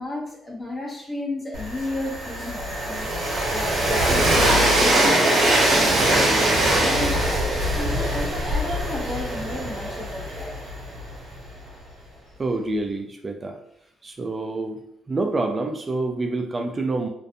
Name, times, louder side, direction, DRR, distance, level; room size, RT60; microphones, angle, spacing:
voice 1, 0.0-10.5, left 1 dB, 25° left, -3 dB, 0.9 m, -33 dB
Train, 1.5-11.4, right 1 dB, 70° right, 0.7 m, -22 dB
voice 2, 12.4-13.6 14.0-14.8 15.1-17.1, right 2 dB, 30° right, 5 dB, 0.3 m, -27 dB
2.4 x 2.2 x 2.6 m, 0.71 s
cardioid pair, 90°, 0 cm